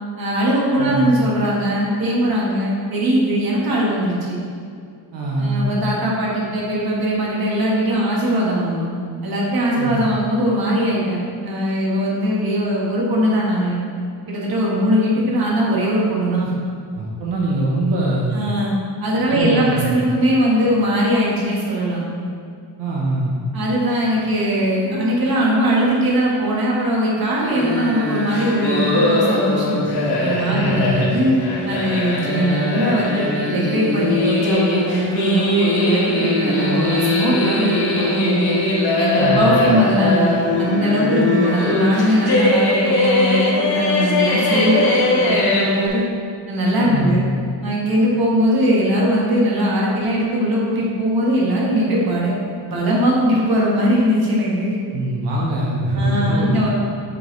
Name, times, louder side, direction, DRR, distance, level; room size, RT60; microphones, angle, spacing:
voice 1, 0.2-4.4 5.4-8.9 9.2-13.8 14.3-16.5 18.3-18.7 19.0-22.0 23.5-29.8 30.2-31.4 31.6-38.5 39.0-40.3 40.6-46.0 46.5-47.2 47.6-52.3 52.7-54.7 56.0-56.7, equal, 55° right, -4 dB, 1.4 m, -20 dB
voice 2, 0.8-1.1 5.1-5.7 9.8-10.1 16.9-18.5 19.3-20.0 22.8-23.4 30.5-31.1 39.2-39.7 46.8-47.2 54.9-56.6, right 1 dB, 85° right, -4 dB, 1.0 m, -22 dB
sound 1, 27.4-45.9, left 2 dB, 60° left, 1.4 m, -20 dB
6.7 x 5.2 x 3.1 m, 2.3 s
wide cardioid pair, 175°, 42 cm